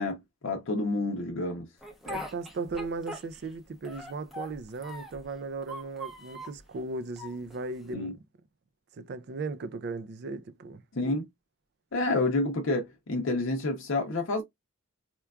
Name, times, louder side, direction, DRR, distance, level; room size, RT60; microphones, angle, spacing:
voice 1, 0.0-1.7 7.9-8.1 10.9-11.3 11.9-14.4, left 2 dB, 65° left, 0.6 m, -29 dB
Speech, 1.8-3.6 3.8-5.3 5.6-6.6 7.2-7.9, left 1 dB, ahead, 0.6 m, -42 dB
voice 2, 2.0-8.2 9.0-10.8, right 3 dB, 50° right, 0.4 m, -37 dB
4.4 x 2.3 x 2.3 m
head